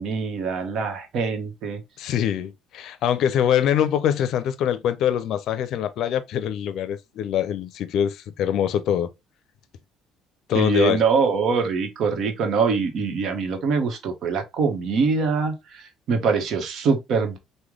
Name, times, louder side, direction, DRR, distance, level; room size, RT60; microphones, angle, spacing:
voice 1, 0.0-1.8 10.5-17.4, right 5 dB, 65° right, 1.0 m, -24 dB
voice 2, 2.0-9.1 10.5-11.0, left 9 dB, 65° left, 0.5 m, -23 dB
3.1 x 2.1 x 3.6 m
supercardioid pair, 90°, 0 cm